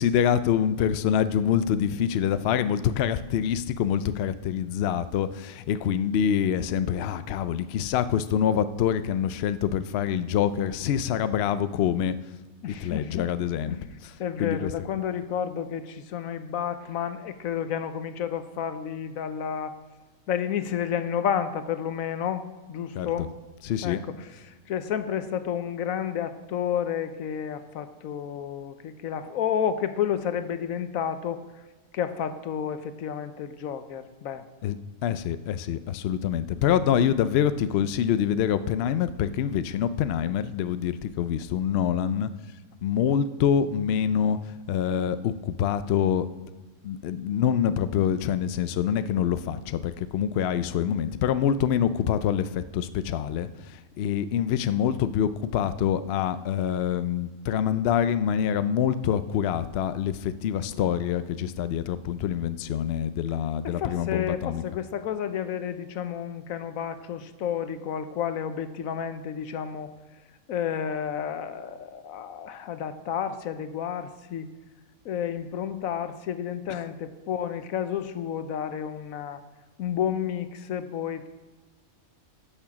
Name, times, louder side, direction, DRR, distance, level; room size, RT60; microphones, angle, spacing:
voice 1, 0.0-12.2 12.7-14.7 22.9-23.3 23.6-24.0 34.6-42.3 42.8-46.3 46.8-64.6 76.7-76.8, left 9 dB, 65° left, 13 dB, 0.7 m, -26 dB
voice 2, 12.6-13.3 13.7-13.8 14.2-19.8 20.3-23.3 23.8-31.6 31.9-34.5 63.6-69.9 70.5-74.5 75.0-79.4 79.8-81.3, left 8 dB, 85° left, 11 dB, 1.2 m, -31 dB
11.0 x 6.7 x 5.9 m, 1.2 s
omnidirectional pair, 1.4 m